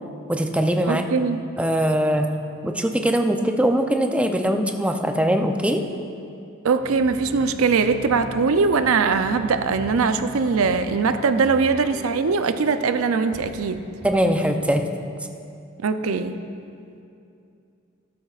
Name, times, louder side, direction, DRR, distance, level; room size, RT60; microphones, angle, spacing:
voice 1, 0.3-1.0 1.6-2.3 2.6-5.8 14.0-14.8, equal, 5° right, 5 dB, 0.5 m, -21 dB
voice 2, 0.9-1.4 6.6-13.8 15.8-16.4, right 4 dB, 90° right, 10 dB, 0.5 m, -21 dB
sound 1, 6.8-14.3, left 1 dB, 35° right, 2.2 m, -40 dB
13.0 x 12.0 x 2.4 m, 2.6 s
head